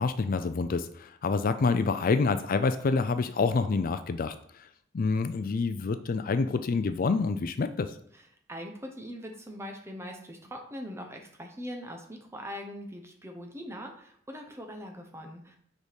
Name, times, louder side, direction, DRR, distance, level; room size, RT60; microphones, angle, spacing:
voice 1, 0.0-4.7 4.9-8.0, left 4 dB, 45° left, 10 dB, 0.4 m, -27 dB
voice 2, 8.5-15.6, equal, 15° right, 3 dB, 1.1 m, -41 dB
6.6 x 4.7 x 5.2 m, 0.66 s
head